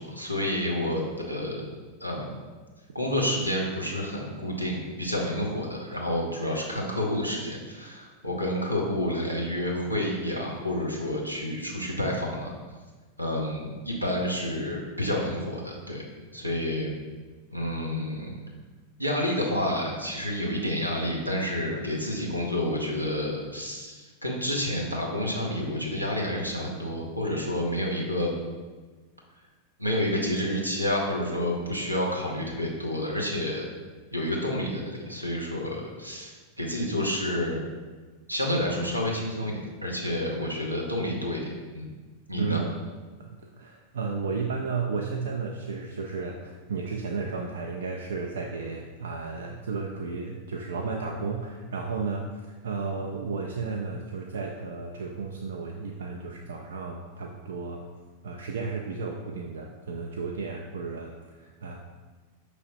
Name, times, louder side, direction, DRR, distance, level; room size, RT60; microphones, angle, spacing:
voice 1, 0.0-1.7 2.0-2.3 2.9-12.5 13.2-16.1 16.3-17.0 17.5-18.4 19.0-28.3 29.8-33.6 34.1-37.6 38.3-41.5 41.7-41.9 42.3-42.6, left 1 dB, 90° right, -1 dB, 0.7 m, -29 dB
voice 2, 42.4-42.7 43.2-57.8 58.2-61.7, right 4 dB, 65° right, 1 dB, 0.3 m, -33 dB
5.6 x 3.2 x 2.6 m, 1.3 s
figure-of-eight pair, 90°, 0 cm